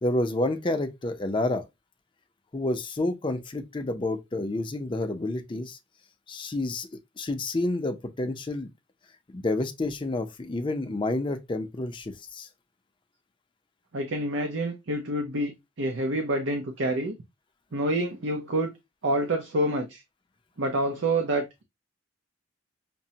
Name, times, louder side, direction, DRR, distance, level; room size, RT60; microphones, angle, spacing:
voice 1, 0.0-1.7 2.5-5.8 6.3-6.9 7.2-8.7 9.3-12.5, left 2 dB, 25° left, 0.5 m, -29 dB
voice 2, 13.9-17.1 17.7-18.7 19.0-20.0 20.6-21.6, right 1 dB, 75° right, 0.6 m, -27 dB
5.9 x 2.1 x 2.7 m
head